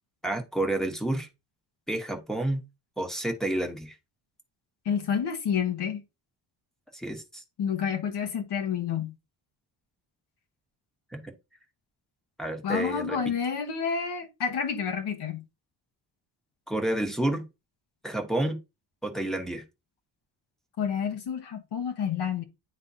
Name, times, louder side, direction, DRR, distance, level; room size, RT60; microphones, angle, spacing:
voice 1, 0.2-1.3 1.9-2.6 3.0-4.0 6.9-7.4 11.1-11.3 12.4-13.4 16.7-17.5 18.0-18.6 19.0-19.6, right 1 dB, ahead, 1.0 m, -30 dB
voice 2, 4.8-6.0 7.6-9.1 12.6-15.4 20.8-22.4, left 7 dB, 75° left, 1.2 m, -29 dB
9.7 x 3.7 x 2.7 m
wide cardioid pair, 155°, 40 cm